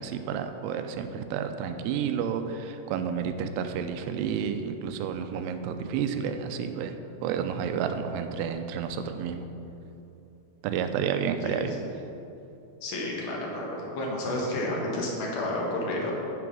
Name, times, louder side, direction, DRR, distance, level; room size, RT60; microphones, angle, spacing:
voice 1, 0.0-6.9 7.2-9.5 10.6-11.7, right 7 dB, 80° right, 8 dB, 2.5 m, -30 dB
voice 2, 11.4-11.8 12.8-16.1, left 1 dB, 60° left, -3 dB, 2.7 m, -31 dB
9.4 x 6.0 x 6.2 m, 2.9 s
omnidirectional pair, 4.9 m